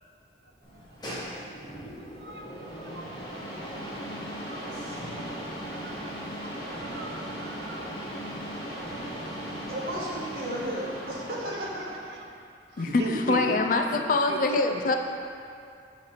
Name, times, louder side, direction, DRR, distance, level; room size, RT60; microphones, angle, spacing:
sound 1, 0.6-12.3, equal, 25° left, 1.0 m, -38 dB
voice 1, 2.0-4.0 4.3-5.0 5.4-7.9 8.6-9.1 10.1-10.2 12.1-12.2 12.7-13.6 13.9-14.0 14.3-14.4 14.7-15.0, right 2 dB, 70° right, 2 dB, 0.6 m, -40 dB
voice 2, 9.7-11.9, right 1 dB, 55° right, -6 dB, 1.2 m, -34 dB
voice 3, 12.8-15.0, left 3 dB, 45° left, 4 dB, 0.4 m, -24 dB
6.5 x 3.2 x 5.6 m, 2.4 s
head